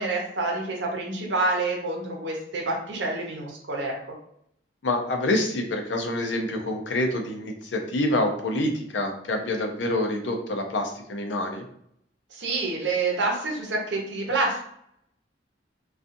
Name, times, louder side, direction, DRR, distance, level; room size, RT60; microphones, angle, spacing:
voice 1, 0.0-3.9 12.3-14.6, right 3 dB, 85° right, 0 dB, 0.7 m, -27 dB
voice 2, 4.8-11.6, left 1 dB, 85° left, 3 dB, 0.5 m, -27 dB
2.5 x 2.3 x 2.5 m, 0.71 s
head